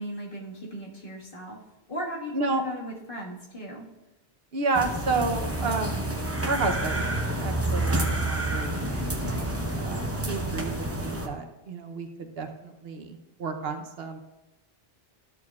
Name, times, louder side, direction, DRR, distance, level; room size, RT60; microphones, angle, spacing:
voice 1, 0.0-1.6 1.9-3.8, equal, 55° left, -4 dB, 1.9 m, -37 dB
voice 2, 2.3-2.6 4.5-6.1 6.5-7.0 7.4-14.2, right 3 dB, 70° right, 5 dB, 1.0 m, -31 dB
sound 1, 4.7-11.3, right 1 dB, 15° right, 0.7 m, -29 dB
13.0 x 6.9 x 2.4 m, 0.98 s
omnidirectional pair, 1.1 m